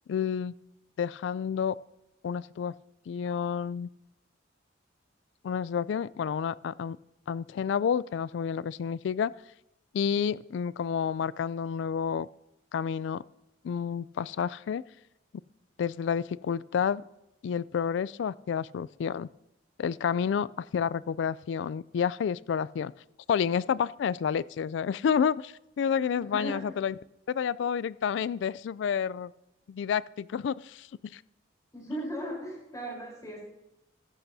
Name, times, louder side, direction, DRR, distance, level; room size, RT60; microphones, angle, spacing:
voice 1, 0.1-0.5 1.0-1.7 2.2-2.7 3.1-3.9 5.4-7.0 7.3-9.3 9.9-12.3 12.7-13.2 13.6-14.8 15.8-17.0 17.4-19.3 19.8-22.9 23.3-27.0 27.3-29.3 29.7-30.9 31.1-31.2, left 7 dB, 65° left, 20 dB, 0.3 m, -29 dB
voice 2, 26.2-26.6 31.7-33.4, equal, 20° left, -3 dB, 3.9 m, -37 dB
14.5 x 11.5 x 2.7 m, 0.88 s
head